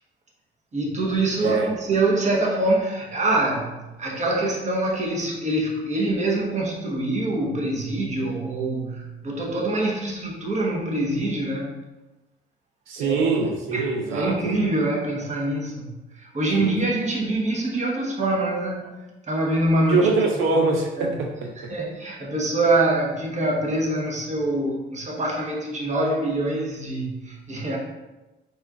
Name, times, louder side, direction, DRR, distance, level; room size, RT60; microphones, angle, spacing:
voice 1, 0.7-11.8 13.0-13.3 13.7-20.1 20.5-20.7 21.0-21.2 21.6-27.8, right 2 dB, 35° right, -2 dB, 1.1 m, -25 dB
voice 2, 1.4-1.7 12.9-14.5 16.5-16.7 19.9-21.5, right 4 dB, 85° right, 2 dB, 0.5 m, -23 dB
4.2 x 2.4 x 3.8 m, 1.1 s
cardioid pair, 90°, 20 cm